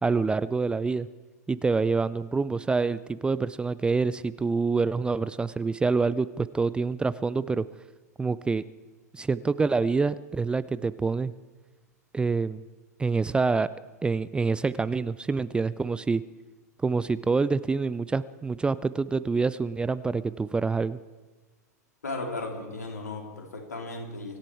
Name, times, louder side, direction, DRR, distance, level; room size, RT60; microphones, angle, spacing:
voice 1, 0.0-1.1 1.5-7.6 8.2-8.6 9.1-11.3 12.1-12.6 13.0-13.7 14.0-16.2 16.8-21.0, right 4 dB, 10° right, 16 dB, 0.4 m, -26 dB
voice 2, 22.0-24.4, left 2 dB, 75° left, 1 dB, 3.5 m, -35 dB
24.5 x 11.5 x 4.7 m, 1.3 s
figure-of-eight pair, 95°, 9 cm